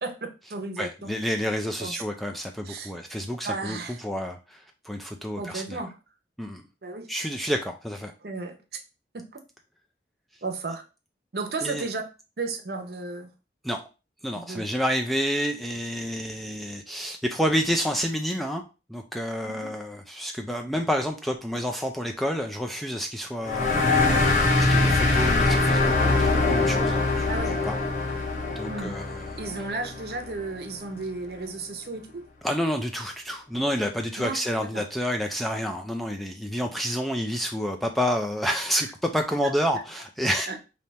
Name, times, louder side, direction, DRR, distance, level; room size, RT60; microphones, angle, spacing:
voice 1, 0.0-1.1 1.8-2.0 2.7-2.9 3.4-4.0 5.4-6.0 6.8-7.1 8.2-8.6 9.1-9.3 10.4-10.8 11.3-12.0 12.4-13.3 14.3-14.6 19.4-19.7 27.3-27.5 28.6-29.0 29.4-32.3 34.2-34.4 34.7-34.8 39.4-39.5 40.5-40.6, right 3 dB, 60° right, 6 dB, 0.7 m, -34 dB
voice 2, 0.8-5.9 6.4-6.6 7.1-8.1 11.6-11.9 13.6-13.8 14.2-18.6 18.9-23.9 24.5-27.8 28.6-29.4 32.4-40.6, equal, ahead, 3 dB, 0.3 m, -29 dB
sound 1, 23.5-30.5, left 3 dB, 40° left, 0.8 m, -23 dB
3.4 x 2.8 x 4.1 m, 0.30 s
head